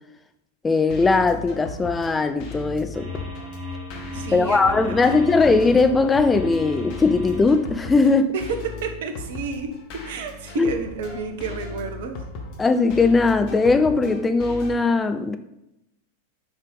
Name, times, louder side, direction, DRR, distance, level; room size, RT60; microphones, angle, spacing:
voice 1, 0.6-3.1 4.3-8.3 10.6-10.7 12.6-15.4, left 3 dB, 15° left, 9 dB, 0.5 m, -19 dB
sound 1, 0.7-14.8, left 4 dB, 45° left, 1.7 m, -37 dB
sound 2, 2.9-8.0, left 2 dB, 25° right, 2.3 m, -36 dB
voice 2, 4.1-5.4 8.3-9.7 10.0-12.2, right 5 dB, 55° right, 7 dB, 1.1 m, -31 dB
7.1 x 5.7 x 5.3 m, 0.84 s
figure-of-eight pair, 90°, 0 cm